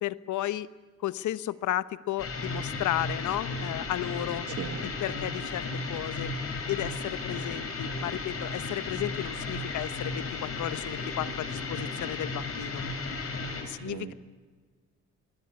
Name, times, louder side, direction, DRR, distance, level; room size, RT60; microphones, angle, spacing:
voice 1, 0.0-0.7 1.0-4.5 4.8-6.3 6.7-12.8 13.7-14.1, left 13 dB, 75° left, 17 dB, 0.9 m, -33 dB
sound 1, 2.2-13.6, left 3 dB, 50° left, 6.0 m, -34 dB
voice 2, 4.5-4.8 13.8-14.1, right 11 dB, 90° right, 10 dB, 1.7 m, -38 dB
26.0 x 21.5 x 9.5 m, 1.4 s
cardioid pair, 90°, 30 cm